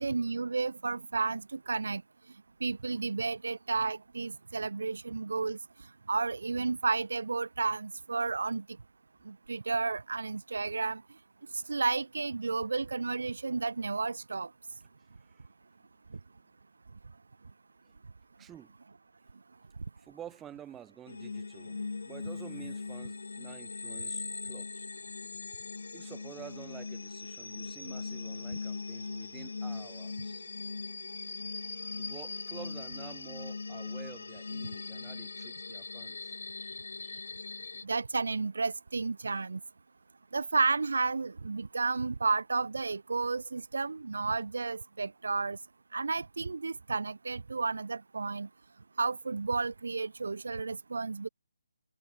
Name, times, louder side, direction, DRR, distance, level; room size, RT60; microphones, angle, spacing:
voice 1, 0.0-2.0 2.6-5.6 6.1-8.6 9.3-11.0 11.7-14.5 37.8-39.6 40.3-45.6 45.9-48.5 49.0-51.3, right 4 dB, 70° right, 1.0 m, -32 dB
voice 2, 18.4-18.7 20.0-24.9 25.9-30.5 32.0-37.3, right 10 dB, 10° right, 1.9 m, -50 dB
sound 1, 21.1-37.8, left 4 dB, 70° left, 1.2 m, -40 dB
hypercardioid pair, 165°, 0 cm